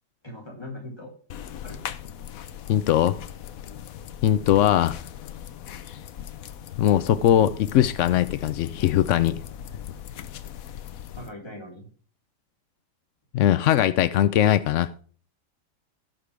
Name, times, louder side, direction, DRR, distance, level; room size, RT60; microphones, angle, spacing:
voice 1, 0.2-1.1 1.6-1.8 11.2-11.9, left 1 dB, 15° left, 3.0 m, -40 dB
sound 1, 1.3-11.3, left 10 dB, 60° left, 1.0 m, -39 dB
voice 2, 2.7-3.2 4.2-5.0 6.8-9.4 13.3-14.9, left 11 dB, 80° left, 0.6 m, -20 dB
16.5 x 6.0 x 3.3 m
omnidirectional pair, 1.8 m